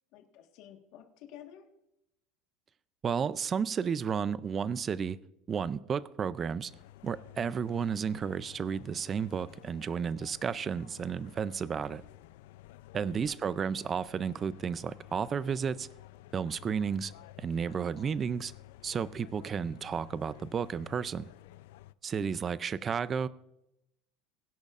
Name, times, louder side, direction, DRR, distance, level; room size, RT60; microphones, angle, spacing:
voice 1, 0.1-1.7 13.0-13.8 22.1-22.3, left 10 dB, 50° left, 1.4 m, -52 dB
voice 2, 3.0-5.2 5.5-6.7 7.0-12.0 12.9-15.9 16.3-17.1 17.4-18.5 18.8-21.3 22.0-23.3, right 6 dB, 20° right, 0.3 m, -32 dB
sound 1, 6.7-21.9, left 15 dB, 85° left, 0.4 m, -53 dB
21.0 x 10.5 x 2.5 m
cardioid pair, 180°, 0 cm